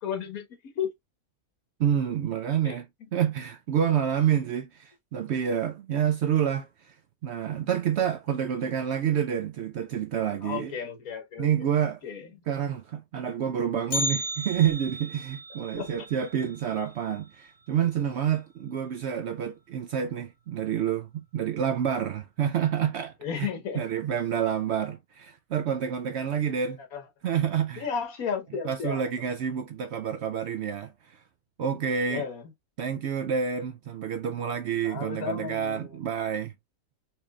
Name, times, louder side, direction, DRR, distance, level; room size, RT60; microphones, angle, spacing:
voice 1, 0.0-0.9 2.6-2.8 10.4-12.3 15.7-16.0 23.2-23.8 26.9-27.1 27.8-29.1 32.1-32.5 34.8-36.0, left 7 dB, 85° left, 1.6 m, -34 dB
voice 2, 1.8-6.9 7.2-10.7 11.4-12.0 12.5-23.5 23.8-26.8 27.2-27.9 28.6-31.2 31.6-32.2 32.8-36.5, right 8 dB, 65° right, 0.7 m, -28 dB
Bell, 13.9-18.0 18.3-18.4 18.9-19.0 19.8-19.9 20.6-20.9 21.3-21.4, left 1 dB, 55° left, 2.2 m, -35 dB
4.4 x 2.9 x 2.3 m
omnidirectional pair, 1.5 m